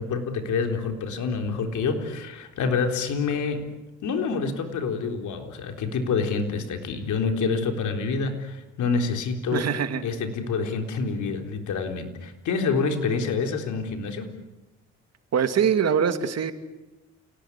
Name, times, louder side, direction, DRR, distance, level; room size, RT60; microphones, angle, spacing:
voice 1, 0.0-3.7 4.0-9.7 10.0-14.3, left 4 dB, 75° left, 5 dB, 3.9 m, -27 dB
voice 2, 9.5-10.0 15.3-16.5, right 7 dB, 55° right, 9 dB, 2.4 m, -23 dB
29.0 x 18.5 x 9.9 m, 1.0 s
cardioid pair, 90°, 30 cm